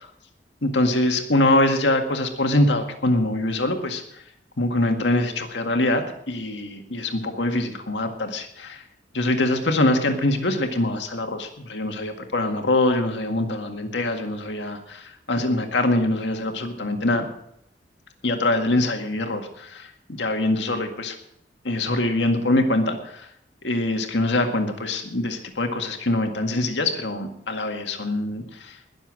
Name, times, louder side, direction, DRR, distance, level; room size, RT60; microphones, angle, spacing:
voice 1, 0.6-4.0 4.6-8.8 9.1-17.3 18.2-21.2 21.6-23.3 23.6-28.8, left 1 dB, 90° left, 5 dB, 1.9 m, -24 dB
20.5 x 7.2 x 6.3 m, 0.73 s
head